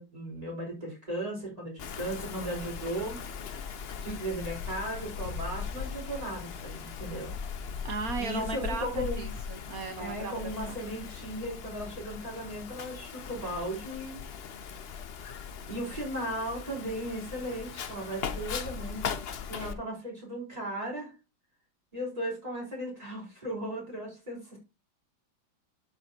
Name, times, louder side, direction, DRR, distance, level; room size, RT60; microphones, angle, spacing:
voice 1, 0.0-3.2 4.0-7.3 8.2-9.3 10.0-14.2 15.7-19.0 19.5-21.2 21.9-24.6, right 1 dB, 20° right, -3 dB, 4.2 m, -36 dB
Wind, 1.8-19.7, left 6 dB, 80° left, 0.5 m, -39 dB
voice 2, 4.1-4.4 7.8-10.8 19.5-19.7, right 3 dB, 50° right, 7 dB, 1.5 m, -37 dB
12.0 x 5.5 x 2.8 m, 0.29 s
omnidirectional pair, 2.0 m